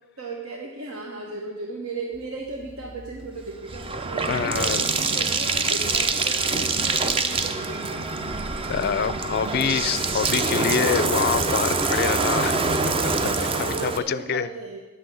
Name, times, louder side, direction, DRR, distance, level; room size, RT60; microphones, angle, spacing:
voice 1, 0.2-8.1 8.7-8.9 10.2-10.8 13.4-14.8, right 3 dB, 75° right, 0 dB, 1.1 m, -36 dB
Bathtub (filling or washing), 2.6-14.0, right 3 dB, 25° right, 0.5 m, -25 dB
voice 2, 4.3-4.9 8.7-12.6 12.9-13.3 13.6-14.5, left 7 dB, 45° left, 15 dB, 0.4 m, -26 dB
10.5 x 6.3 x 7.8 m, 1.3 s
head